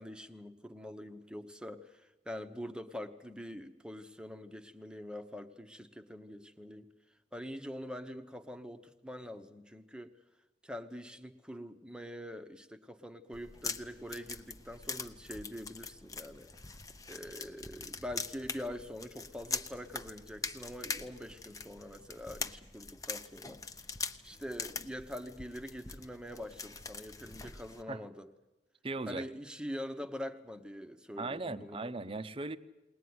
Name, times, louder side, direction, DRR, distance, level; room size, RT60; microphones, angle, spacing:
voice 1, 0.0-6.9 7.3-10.1 10.6-16.5 17.1-23.6 24.2-28.3 29.1-31.8, equal, 5° right, 8 dB, 1.0 m, -44 dB
sound 1, 13.3-27.8, left 4 dB, 20° left, 0.7 m, -43 dB
voice 2, 28.8-29.3 31.2-32.6, right 3 dB, 30° right, 12 dB, 0.8 m, -38 dB
21.5 x 19.5 x 9.5 m, 1.0 s
head